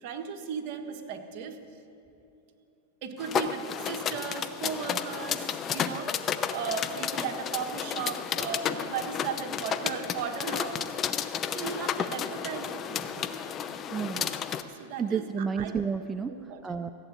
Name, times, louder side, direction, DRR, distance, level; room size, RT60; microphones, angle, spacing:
voice 1, 0.0-1.6 3.0-6.1 6.5-11.0 11.5-13.3 14.7-15.7 16.3-16.9, right 6 dB, 50° right, 4 dB, 1.4 m, -36 dB
sound 1, 3.2-14.6, left 8 dB, 30° left, 0.6 m, -32 dB
voice 2, 13.9-14.2 15.0-16.3 16.6-16.9, right 6 dB, 15° right, 9 dB, 0.4 m, -30 dB
15.0 x 8.2 x 8.3 m, 2.9 s
hypercardioid pair, 130°, 0 cm